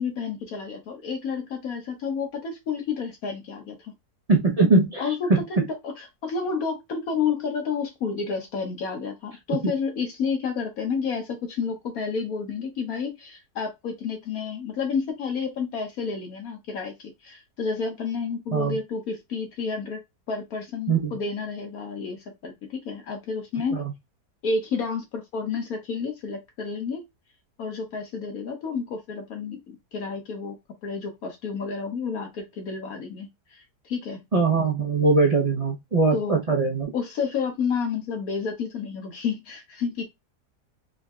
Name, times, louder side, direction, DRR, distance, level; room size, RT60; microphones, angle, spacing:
voice 1, 0.0-3.9 5.0-20.0 20.3-23.8 24.4-27.0 27.6-30.6 30.8-34.2 36.1-36.4 36.9-40.0, left 5 dB, 65° left, 1.3 m, -30 dB
voice 2, 4.3-5.4 9.6-9.7 18.5-18.8 20.9-21.1 23.7-23.8 34.3-36.9, right 3 dB, 40° right, 0.5 m, -21 dB
3.7 x 3.1 x 2.4 m
omnidirectional pair, 1.7 m